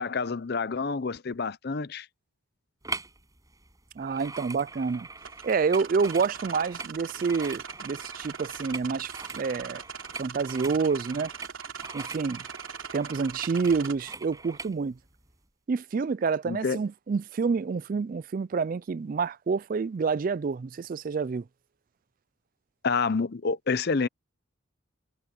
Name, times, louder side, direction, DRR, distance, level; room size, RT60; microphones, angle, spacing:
voice 1, 0.0-2.1 16.4-16.8 22.8-24.1, left 4 dB, 50° left, 0.6 m, -28 dB
sound 1, 2.8-3.2 3.5-14.8 15.3-15.4, right 3 dB, 15° right, 6.4 m, -42 dB
voice 2, 4.0-5.1 5.4-9.8 10.2-11.3 11.9-12.4 12.9-14.9 15.7-21.4, right 5 dB, 40° right, 0.3 m, -28 dB
sound 2, 5.2-14.0, right 7 dB, 75° right, 3.0 m, -41 dB
head